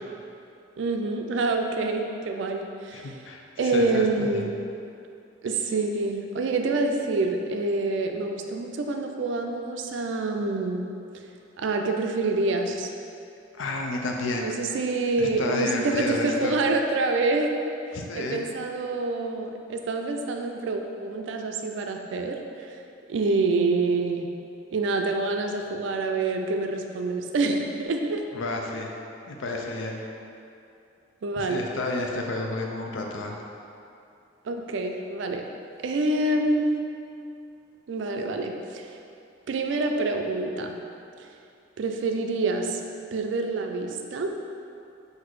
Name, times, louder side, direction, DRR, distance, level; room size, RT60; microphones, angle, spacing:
voice 1, 0.8-3.1 3.6-4.5 5.4-10.8 11.6-12.9 14.3-17.5 18.1-22.8 23.1-24.3 24.7-28.2 31.2-31.6 34.4-35.4 35.8-36.7 37.9-38.9 39.5-40.7 41.8-42.8 43.1-44.3, right 3 dB, 65° right, 4 dB, 0.4 m, -26 dB
voice 2, 2.9-4.5 13.6-14.5 15.2-16.6 17.9-18.4 28.3-28.9 29.3-30.0 31.4-33.4, left 2 dB, 75° left, 1 dB, 0.5 m, -31 dB
4.0 x 2.6 x 4.6 m, 2.6 s
head